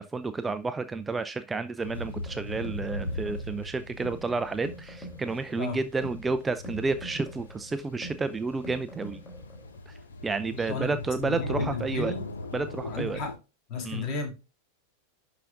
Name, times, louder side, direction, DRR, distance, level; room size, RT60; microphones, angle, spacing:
voice 1, 0.0-9.2 9.9-10.0 10.2-12.1 12.5-13.2 13.8-14.1, right 3 dB, 15° right, 0.5 m, -31 dB
sound 1, 1.8-13.3, left 2 dB, 70° left, 1.7 m, -39 dB
sound 2, 1.8-9.8, right 1 dB, 15° left, 3.4 m, -45 dB
voice 2, 10.5-12.3 12.9-13.4 13.7-14.3, left 3 dB, 35° left, 3.3 m, -34 dB
11.0 x 5.1 x 2.5 m
figure-of-eight pair, 90°, 0 cm